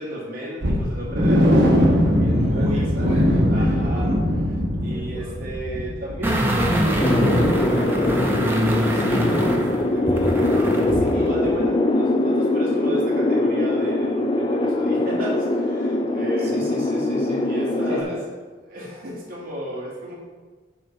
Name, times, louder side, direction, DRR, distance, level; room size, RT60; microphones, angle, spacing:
voice 1, 0.0-3.1 3.5-4.1 4.8-16.8 17.4-18.2 18.6-20.2, equal, 50° right, -5 dB, 1.9 m, -33 dB
sound 1, 0.6-8.4 8.6-8.8 9.2-9.3, equal, 70° right, 1.0 m, -21 dB
voice 2, 2.2-4.2 4.9-5.4 6.4-7.5 11.1-11.3 16.4-17.5 17.9-18.2, equal, 30° right, -5 dB, 1.0 m, -32 dB
sound 2, 6.2-11.1 11.5-11.6, equal, 10° right, 0.6 m, -23 dB
sound 3, 7.0-18.0, left 2 dB, 25° left, 0.4 m, -22 dB
7.4 x 3.3 x 5.4 m, 1.4 s
head